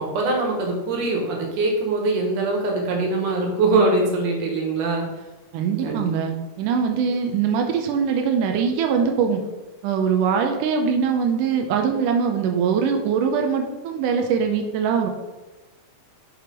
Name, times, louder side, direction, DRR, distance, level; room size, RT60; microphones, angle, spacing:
voice 1, 0.0-5.1 5.8-6.0, right 3 dB, 60° right, 0 dB, 2.6 m, -22 dB
voice 2, 5.5-9.4 9.8-15.1, right 6 dB, 85° right, 4 dB, 1.8 m, -22 dB
6.0 x 4.9 x 5.2 m, 1.1 s
omnidirectional pair, 4.6 m